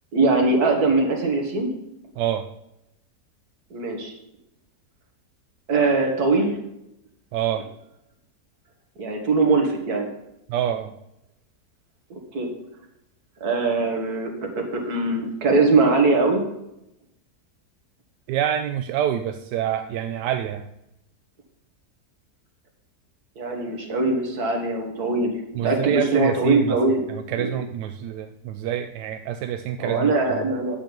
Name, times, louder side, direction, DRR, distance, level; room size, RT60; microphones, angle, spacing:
voice 1, 0.1-1.7 3.7-4.1 5.7-6.5 9.0-10.1 12.1-12.5 13.4-16.4 23.4-25.3 25.6-27.0 27.4-27.5 29.8-30.8, right 3 dB, 65° right, 2 dB, 2.2 m, -21 dB
voice 2, 2.2-2.5 7.3-7.7 10.5-10.9 18.3-20.7 25.5-26.8 27.1-30.5, right 10 dB, 90° right, 8 dB, 1.2 m, -27 dB
9.0 x 7.6 x 5.2 m, 0.83 s
omnidirectional pair, 1.7 m